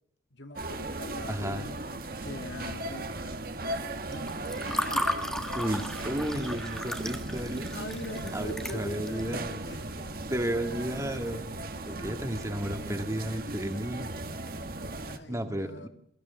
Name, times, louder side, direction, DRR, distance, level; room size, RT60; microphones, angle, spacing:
voice 1, 0.3-3.4 4.1-4.3 4.6-5.1 7.5-10.2 10.9-11.4 11.9-12.2 15.1-15.9, left 1 dB, 75° left, 7 dB, 1.8 m, -43 dB
sound 1, 0.6-15.2, right 2 dB, 50° right, 1.7 m, -37 dB
voice 2, 1.3-1.7 5.5-7.7 8.3-9.6 10.3-11.4 11.9-14.1 15.3-15.9, equal, 15° right, 6 dB, 1.9 m, -33 dB
Water / Fill (with liquid), 4.1-9.3, left 1 dB, 5° left, 1.5 m, -34 dB
22.5 x 14.5 x 9.4 m, 0.74 s
head